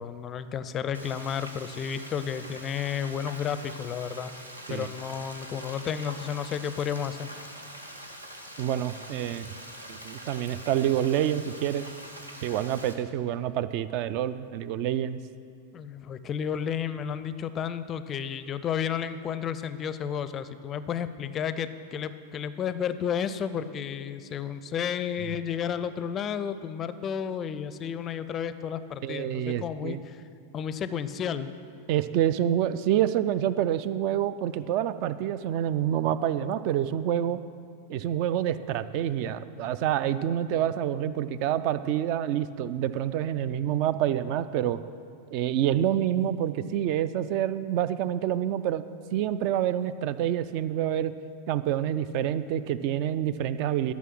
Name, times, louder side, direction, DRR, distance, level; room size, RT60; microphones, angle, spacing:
voice 1, 0.0-4.3 4.7-7.3 15.7-30.2 30.5-31.5, left 8 dB, 30° left, 13 dB, 0.4 m, -32 dB
Frying (food), 0.9-12.9, right 1 dB, 80° right, 0.9 m, -44 dB
voice 2, 8.6-9.5 9.9-11.9 12.4-15.2 29.0-30.0 31.9-37.4 37.9-44.8 45.3-48.8 49.1-51.1 51.5-53.9, right 11 dB, 45° right, 14 dB, 0.3 m, -27 dB
12.5 x 6.1 x 6.1 m, 2.3 s
figure-of-eight pair, 90°, 0 cm